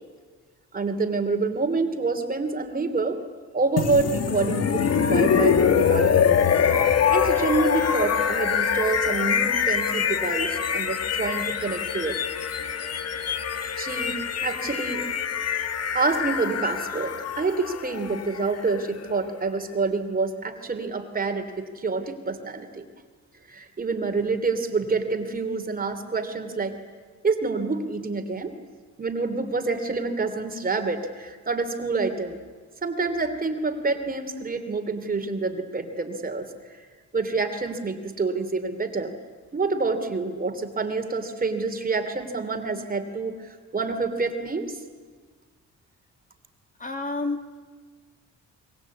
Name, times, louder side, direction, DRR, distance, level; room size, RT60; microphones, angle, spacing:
voice 1, 0.7-3.2 3.5-6.4 7.1-12.2 12.6-13.0 13.8-15.1 15.9-22.8 23.5-26.7 27.2-28.5 29.0-32.4 32.8-36.5 37.1-39.1 39.5-43.4 43.7-44.8, right 3 dB, 30° right, 6 dB, 2.9 m, -27 dB
sound 1, 3.8-19.6, left 7 dB, 55° left, 1.6 m, -24 dB
voice 2, 46.8-47.6, left 3 dB, 25° left, 6 dB, 2.1 m, -30 dB
25.5 x 23.0 x 8.5 m, 1.5 s
cardioid pair, 90°, 30 cm